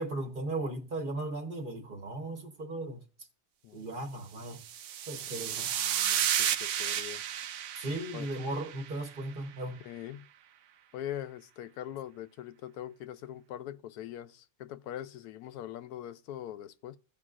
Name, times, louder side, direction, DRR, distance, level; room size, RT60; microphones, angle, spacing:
voice 1, 0.0-3.0 3.7-4.6 5.1-5.7 7.8-9.8, right 2 dB, 40° right, 1.1 m, -36 dB
voice 2, 3.6-4.1 5.3-7.2 8.1-8.3 9.8-10.3 10.9-17.0, left 11 dB, 90° left, 1.1 m, -42 dB
sound 1, 4.5-9.0, right 9 dB, 65° right, 0.8 m, -32 dB
15.5 x 5.2 x 2.4 m
omnidirectional pair, 1.6 m